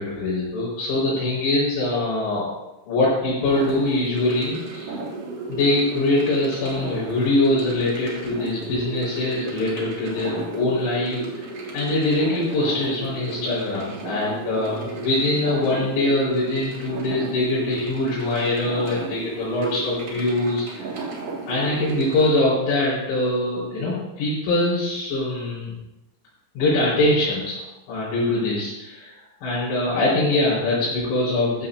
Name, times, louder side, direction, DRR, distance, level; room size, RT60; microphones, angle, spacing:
voice 1, 0.0-2.5 2.9-5.0 5.5-21.0 21.5-25.7 26.6-31.7, left 2 dB, 80° left, -11 dB, 7.2 m, -23 dB
sound 1, 3.4-22.3, right 3 dB, 65° right, 1.5 m, -34 dB
14.5 x 13.5 x 2.6 m, 1.0 s
omnidirectional pair, 6.0 m